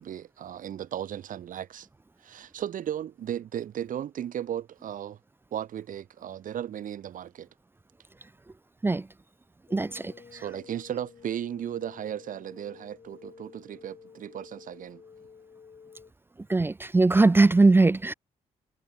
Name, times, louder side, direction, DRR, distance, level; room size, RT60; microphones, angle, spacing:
voice 1, 0.0-1.9 2.2-5.2 5.5-7.5 10.3-15.0, right 10 dB, 70° right, 4.5 m, -35 dB
sound 1, 9.7-16.1, left 6 dB, 45° left, 6.5 m, -52 dB
voice 2, 9.7-10.1 16.5-18.1, right 3 dB, 15° right, 0.4 m, -20 dB
cardioid pair, 80°, 14 cm